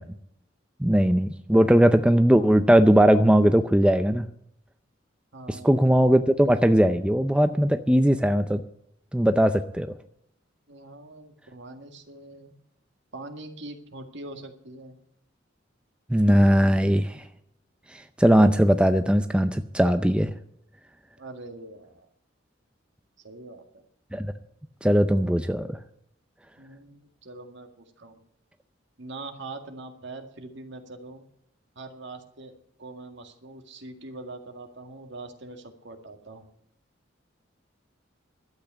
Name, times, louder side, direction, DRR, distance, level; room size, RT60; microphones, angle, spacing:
voice 1, 0.8-4.3 5.5-8.6 9.1-9.9 16.1-17.2 17.9-20.3 24.1-24.3 24.8-25.8, equal, 5° right, 9 dB, 0.5 m, -19 dB
voice 2, 5.3-5.9 10.7-12.5 13.1-15.0 21.2-22.1 23.2-23.8 26.6-28.2 29.0-31.2 31.8-36.5, right 2 dB, 65° right, 6 dB, 2.0 m, -43 dB
12.0 x 8.3 x 9.0 m, 0.73 s
head